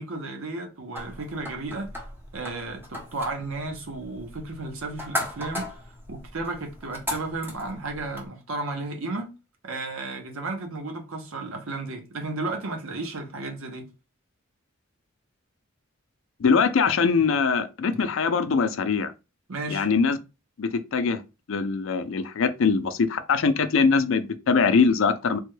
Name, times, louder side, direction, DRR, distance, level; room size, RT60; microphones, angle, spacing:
voice 1, 0.0-2.1 2.3-9.3 9.6-13.9 19.5-19.9, right 2 dB, 85° right, 0.8 m, -33 dB
sound 1, 1.0-8.3, left 1 dB, 10° right, 0.9 m, -37 dB
voice 2, 16.4-19.1 19.7-20.2 20.6-21.2 21.5-25.4, left 5 dB, 70° left, 0.4 m, -22 dB
3.4 x 2.2 x 3.1 m
head